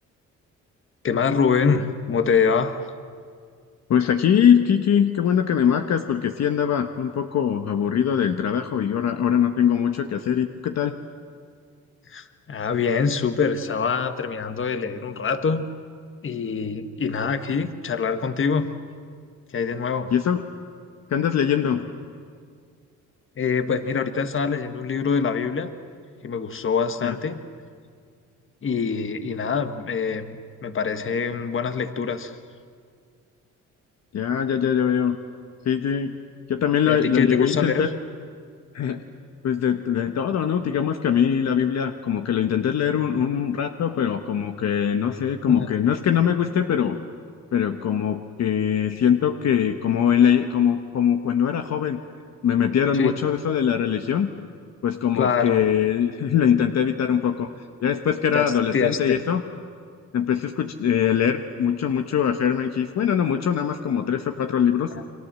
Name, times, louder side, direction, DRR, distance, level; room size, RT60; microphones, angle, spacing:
voice 1, 1.0-2.8 12.1-15.7 16.2-18.7 19.5-20.1 23.4-25.7 26.2-27.4 28.6-32.3 36.9-37.9 45.5-45.7 52.9-53.1 55.2-55.6 58.3-59.2 64.9-65.0, left 6 dB, 40° left, 9 dB, 1.6 m, -24 dB
voice 2, 3.9-10.9 20.1-20.4 21.1-21.9 27.0-27.1 34.1-35.2 35.6-36.1 36.5-37.9 38.7-39.0 39.4-47.0 47.5-52.0 52.4-54.3 54.8-57.5 57.8-59.4 60.1-64.9, left 8 dB, 60° left, 6 dB, 1.2 m, -22 dB
30.0 x 23.5 x 7.6 m, 2.1 s
cardioid pair, 90°, 30 cm